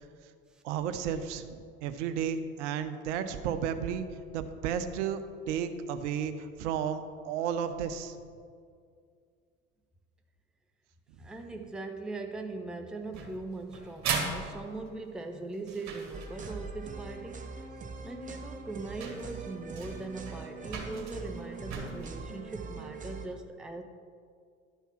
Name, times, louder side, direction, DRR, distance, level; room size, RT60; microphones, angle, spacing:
voice 1, 0.6-4.1 4.3-8.2, right 8 dB, 60° right, 10 dB, 0.8 m, -33 dB
voice 2, 11.2-17.5 18.0-23.8, right 3 dB, ahead, 5 dB, 0.6 m, -40 dB
sound 1, 13.1-16.7 18.1-18.2 18.7-18.8 19.0-22.1, right 5 dB, 40° right, 2.2 m, -38 dB
sound 2, 16.1-23.3, right 4 dB, 20° right, 1.0 m, -42 dB
11.5 x 5.7 x 5.8 m, 2.2 s
figure-of-eight pair, 70°, 42 cm